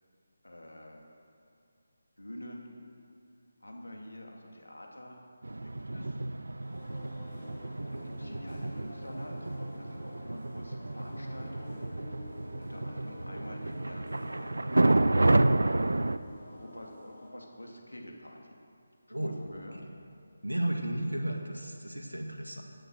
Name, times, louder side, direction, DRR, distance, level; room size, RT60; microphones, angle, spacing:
voice 1, 0.4-1.0 2.2-2.7 3.6-5.2 5.6-6.2 7.9-11.8 12.6-14.5 15.4-15.8 16.5-18.5 19.1-19.8, left 1 dB, 80° left, 0 dB, 2.8 m, -47 dB
sound 1, 5.4-16.2, right 2 dB, 70° right, 0.5 m, -30 dB
sound 2, 6.6-17.3, left 1 dB, 30° left, 3.7 m, -49 dB
voice 2, 6.7-7.0 19.1-19.9 20.4-22.6, right 1 dB, 85° right, 3 dB, 2.0 m, -35 dB
16.5 x 9.1 x 6.4 m, 2.4 s
figure-of-eight pair, 155°, 0 cm